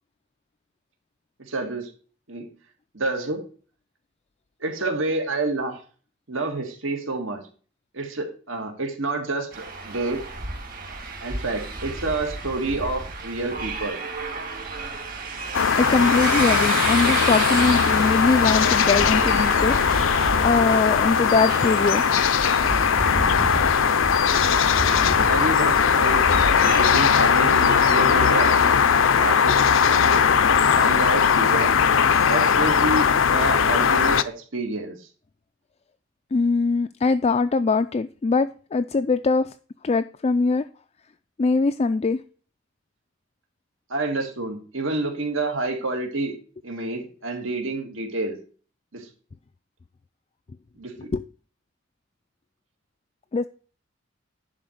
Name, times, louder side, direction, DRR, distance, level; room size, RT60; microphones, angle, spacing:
voice 1, 1.4-1.9 2.3-2.5 2.9-3.4 4.6-5.8 6.3-7.4 7.9-10.2 11.2-14.0 25.3-26.2 26.5-28.5 29.2-29.5 30.0-30.2 30.8-31.8 32.3-35.0 43.9-46.4 46.6-48.4 48.9-49.1 50.8-50.9, right 2 dB, 75° right, 1.9 m, -28 dB
sound 1, 9.5-28.7, right 3 dB, 45° right, 1.9 m, -31 dB
sound 2, 15.5-34.2, left 6 dB, 75° left, 0.6 m, -19 dB
voice 2, 15.8-19.8 20.4-22.0 36.3-39.5 39.8-40.6 41.4-42.2 51.0-51.2 53.3-53.5, left 4 dB, 30° left, 0.3 m, -22 dB
10.5 x 4.3 x 6.4 m
head